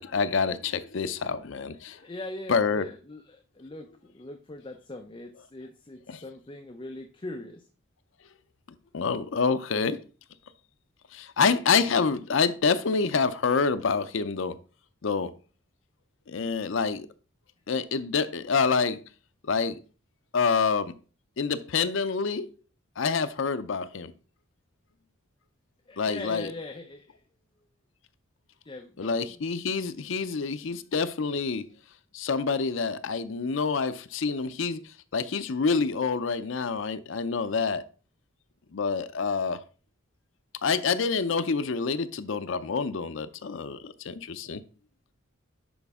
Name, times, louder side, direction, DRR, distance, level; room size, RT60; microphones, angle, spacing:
voice 1, 0.0-2.0 2.5-2.8 6.1-6.2 8.9-10.0 11.1-14.6 15.0-15.3 16.3-17.1 17.7-19.0 19.5-19.8 20.3-20.9 21.4-22.5 23.0-24.1 26.0-26.5 29.0-31.6 32.1-34.8 35.1-37.8 38.7-39.6 40.6-44.6, left 5 dB, 65° left, 0.5 m, -27 dB
voice 2, 1.9-7.7 25.9-27.2 28.6-29.4, left 2 dB, 25° left, 0.6 m, -41 dB
11.0 x 5.0 x 3.6 m
head